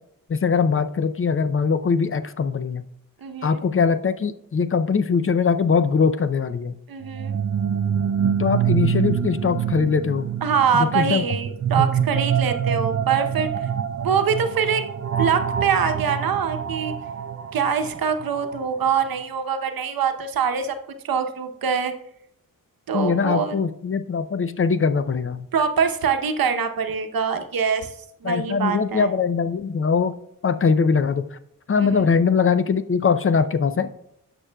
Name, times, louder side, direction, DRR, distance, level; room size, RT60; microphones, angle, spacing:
voice 1, 0.3-2.8 3.4-6.8 8.4-10.3 10.7-11.2 11.8-11.9 22.9-25.5 28.2-30.1 30.4-31.4 31.7-33.9, left 5 dB, 40° left, 12 dB, 0.5 m, -21 dB
voice 2, 3.2-3.7 6.9-7.3 10.4-13.7 14.0-14.8 15.2-16.9 17.5-20.8 21.0-21.9 22.9-23.6 25.5-27.9 28.2-29.1 31.8-32.1, right 6 dB, 90° right, 7 dB, 0.8 m, -24 dB
sound 1, 7.0-18.9, right 8 dB, 45° right, 0.5 m, -26 dB
16.0 x 6.0 x 2.2 m, 0.74 s
wide cardioid pair, 95°, 34 cm